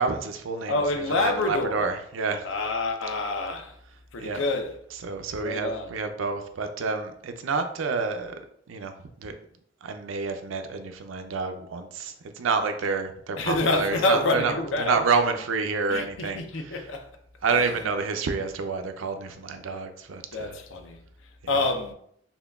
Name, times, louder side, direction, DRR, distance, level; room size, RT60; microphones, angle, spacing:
voice 1, 0.0-2.5 4.2-4.4 5.0-8.4 8.7-9.3 9.8-16.8 17.4-20.6 21.5-21.6, right 4 dB, 90° right, 0.5 m, -29 dB
voice 2, 0.7-1.9 2.4-3.8 4.1-4.7 5.4-5.9 13.4-15.0 15.9-17.1 17.5-17.7 20.3-21.0 21.5-21.9, left 2 dB, 75° left, 0.6 m, -27 dB
5.5 x 2.2 x 2.3 m
head